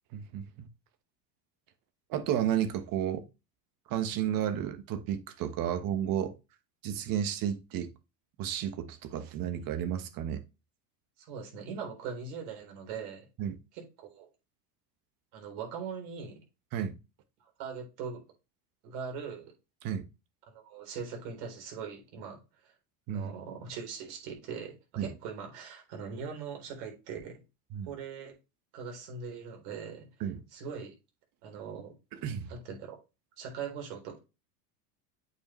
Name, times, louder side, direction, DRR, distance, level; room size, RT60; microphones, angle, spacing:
voice 1, 0.1-0.7 2.1-3.3 3.9-6.3 6.8-7.9 8.4-10.4 13.4-13.5 16.7-16.9 19.8-20.1 23.1-23.3 25.0-25.1 27.7-27.9 30.2-30.4 32.2-32.5, right 9 dB, 45° right, 1.2 m, -32 dB
voice 2, 11.2-13.3 13.7-14.3 15.3-16.4 17.6-18.2 18.8-19.5 20.5-22.7 23.1-27.4 27.9-28.3 28.7-30.1 30.5-30.9 31.4-31.9 32.5-33.0 33.4-34.2, right 6 dB, 60° right, 3.9 m, -41 dB
8.3 x 5.1 x 3.1 m
supercardioid pair, 130°, 48 cm